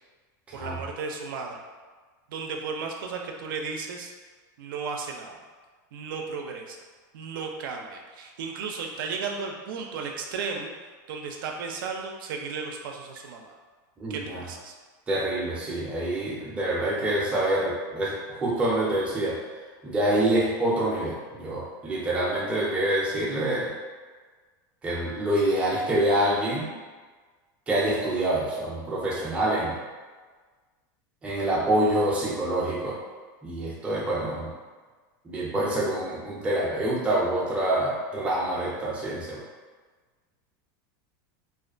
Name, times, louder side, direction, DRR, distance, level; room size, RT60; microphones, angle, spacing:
voice 1, 0.5-1.6 2.3-4.1 4.6-5.4 5.9-6.8 7.1-10.7 11.1-13.6 14.1-14.7, right 5 dB, 85° right, 2 dB, 0.4 m, -34 dB
voice 2, 14.0-14.4 15.1-19.4 19.8-23.7 24.8-26.7 27.7-29.8 31.2-33.0 33.4-34.5 35.2-39.4, right 1 dB, 10° right, -5 dB, 0.4 m, -26 dB
2.3 x 2.2 x 2.4 m, 1.4 s
supercardioid pair, 155°, 11 cm